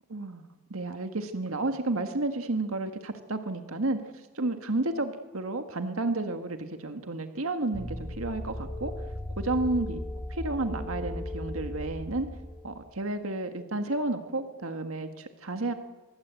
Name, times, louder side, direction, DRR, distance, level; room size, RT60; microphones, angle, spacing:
voice 1, 0.1-0.4 0.7-8.9 9.4-10.0 10.3-12.3 12.6-15.7, right 2 dB, 80° right, 7 dB, 1.6 m, -31 dB
sound 1, 7.7-12.7, left 1 dB, 5° left, 3.6 m, -37 dB
25.0 x 22.0 x 8.3 m, 1.3 s
head